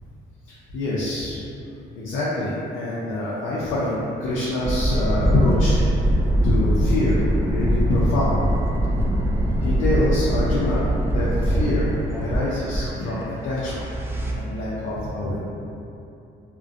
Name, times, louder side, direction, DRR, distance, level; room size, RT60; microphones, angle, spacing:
voice 1, 0.5-1.4 1.9-5.8 6.4-8.4 9.6-11.9 12.2-13.8 14.3-15.4, left 1 dB, 85° left, -7 dB, 0.4 m, -25 dB
sound 1, 4.6-14.3, equal, 10° right, 0.3 m, -22 dB
2.4 x 2.1 x 2.5 m, 2.8 s
cardioid pair, 90°, 20 cm